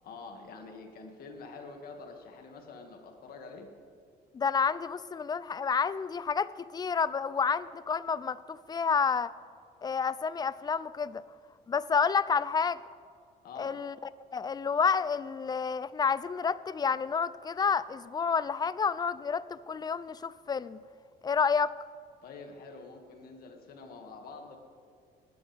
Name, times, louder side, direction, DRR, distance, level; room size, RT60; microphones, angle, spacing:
voice 1, 0.0-3.7 13.4-13.7 22.2-24.6, left 4 dB, 60° left, 3 dB, 2.1 m, -46 dB
voice 2, 4.3-9.3 9.8-11.2 11.7-12.8 13.6-14.0 14.3-20.8 21.2-21.7, left 6 dB, 25° left, 17 dB, 0.4 m, -29 dB
19.0 x 11.5 x 3.5 m, 2.3 s
cardioid pair, 110°, 17 cm